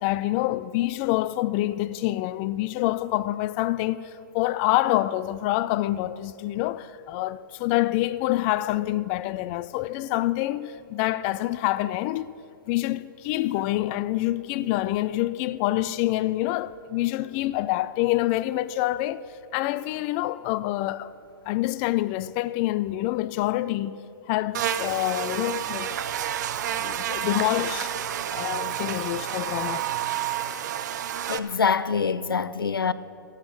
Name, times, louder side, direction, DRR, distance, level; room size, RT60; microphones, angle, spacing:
voice 1, 0.0-12.2 12.7-21.1 21.5-24.0 24.3-25.9 26.8-27.9 28.3-29.9, left 16 dB, 30° left, 0.4 m, -26 dB
Buzz, 24.5-31.4, right 10 dB, 55° right, 0.7 m, -30 dB
voice 2, 31.3-32.9, left 5 dB, 85° left, 0.5 m, -25 dB
15.5 x 8.2 x 7.9 m
hypercardioid pair, 125°, 11 cm